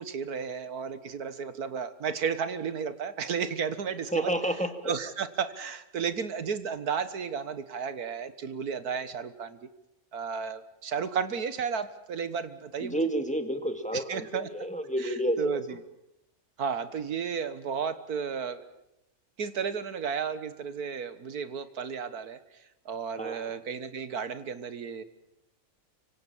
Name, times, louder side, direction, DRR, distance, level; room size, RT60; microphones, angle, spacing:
voice 1, 0.0-4.3 4.9-9.6 10.1-13.1 13.9-14.5 15.4-15.8 16.6-18.6 19.4-22.4 22.9-25.0, right 6 dB, 90° right, 12 dB, 2.0 m, -33 dB
voice 2, 4.1-4.9 12.8-15.6 23.2-23.6, right 1 dB, 5° left, 6 dB, 2.2 m, -30 dB
26.0 x 25.0 x 7.4 m, 0.89 s
omnidirectional pair, 1.6 m